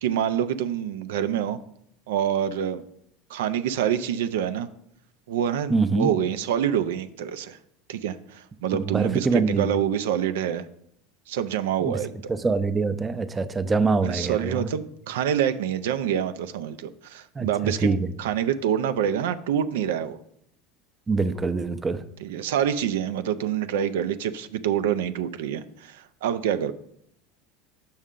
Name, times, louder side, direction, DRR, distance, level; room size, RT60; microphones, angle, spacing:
voice 1, 0.0-1.6 2.1-2.8 3.3-4.7 5.3-7.6 7.9-10.7 11.3-12.1 14.0-17.9 18.2-20.2 22.2-26.7, right 9 dB, 85° right, 11 dB, 0.3 m, -26 dB
voice 2, 5.7-6.1 8.7-9.7 11.8-11.9 12.4-14.7 17.4-17.5 17.8-18.1 21.1-22.0, right 4 dB, 20° right, 11 dB, 0.5 m, -24 dB
6.2 x 5.6 x 3.7 m, 0.73 s
supercardioid pair, 105°, 0 cm